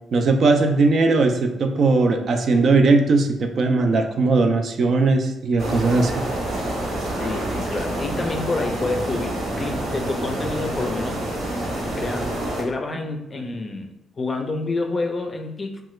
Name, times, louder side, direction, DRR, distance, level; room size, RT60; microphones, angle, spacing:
voice 1, 0.1-6.2, right 3 dB, 55° right, 4 dB, 0.4 m, -19 dB
sound 1, 5.6-12.6, right 1 dB, 75° right, 1.0 m, -27 dB
voice 2, 7.1-11.6 11.8-12.3 12.6-13.9 14.2-15.8, left 3 dB, 30° left, 4 dB, 0.4 m, -28 dB
2.9 x 2.3 x 3.1 m, 0.86 s
cardioid pair, 90°, 0 cm